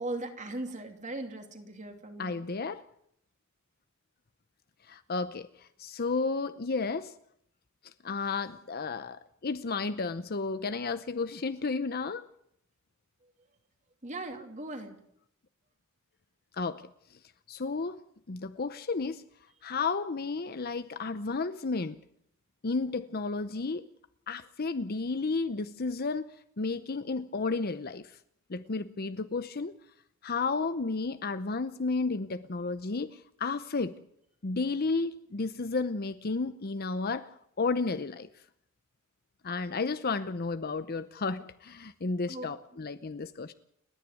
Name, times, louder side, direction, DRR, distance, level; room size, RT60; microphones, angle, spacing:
voice 1, 0.0-2.4 13.2-13.3 14.0-15.0 42.3-42.5, right 2 dB, 35° right, 2.6 m, -38 dB
voice 2, 2.2-2.8 4.9-7.1 8.0-12.2 16.5-16.8 17.5-18.0 18.3-19.2 19.6-22.0 22.6-23.9 24.3-26.3 26.6-28.1 28.5-29.7 30.2-34.0 34.4-37.3 37.6-38.3 39.4-43.5, left 4 dB, 50° left, 0.8 m, -32 dB
30.0 x 10.0 x 9.4 m
head